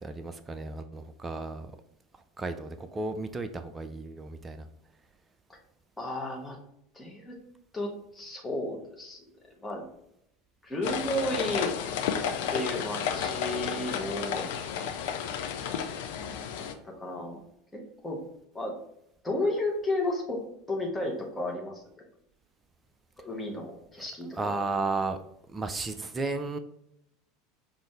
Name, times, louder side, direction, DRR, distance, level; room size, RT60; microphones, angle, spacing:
voice 1, 0.0-1.7 2.4-4.7 24.3-25.2 25.5-26.6, right 3 dB, 20° right, 9 dB, 0.4 m, -33 dB
voice 2, 6.0-6.6 6.9-7.4 7.7-9.2 9.6-9.8 10.6-11.7 12.5-14.5 16.2-17.4 17.7-18.2 18.5-18.8 19.2-20.4 20.7-22.0 23.2-24.6, left 1 dB, 10° left, -1 dB, 1.1 m, -33 dB
sound 1, 10.8-16.7, left 7 dB, 55° left, 0.4 m, -32 dB
5.3 x 2.6 x 3.3 m, 0.77 s
figure-of-eight pair, 75°, 0 cm